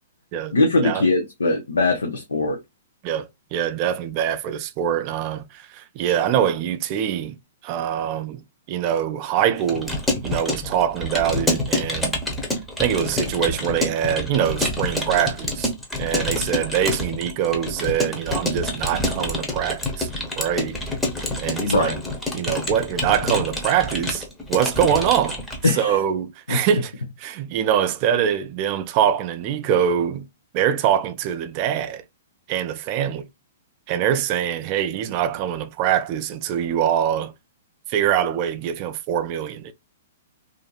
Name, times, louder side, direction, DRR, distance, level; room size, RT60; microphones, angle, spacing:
voice 1, 0.5-2.6 21.6-21.9 25.6-26.0 26.5-26.6, left 3 dB, 85° left, 0.6 m, -21 dB
voice 2, 3.0-7.4 7.6-8.4 8.7-10.0 10.2-12.2 12.8-15.7 16.0-20.1 20.4-20.8 21.4-22.0 22.3-26.9 27.2-30.3 30.5-32.0 32.5-33.3 33.9-37.3 37.9-39.7, right 9 dB, 40° right, 0.4 m, -23 dB
Keyboard (musical) / Computer keyboard, 9.6-25.7, left 1 dB, 5° left, 0.8 m, -27 dB
2.6 x 2.5 x 2.3 m
hypercardioid pair, 120°, 0 cm